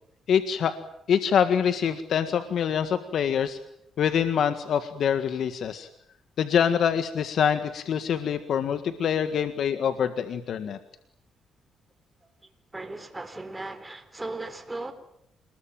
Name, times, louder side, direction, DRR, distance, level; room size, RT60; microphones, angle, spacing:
voice 1, 0.3-0.8 1.1-3.6 4.0-5.9 6.4-10.8, left 8 dB, 65° left, 9 dB, 1.7 m, -25 dB
voice 2, 12.7-14.9, right 2 dB, 15° right, 9 dB, 4.3 m, -37 dB
28.0 x 21.0 x 9.1 m, 0.78 s
cardioid pair, 90°, 0 cm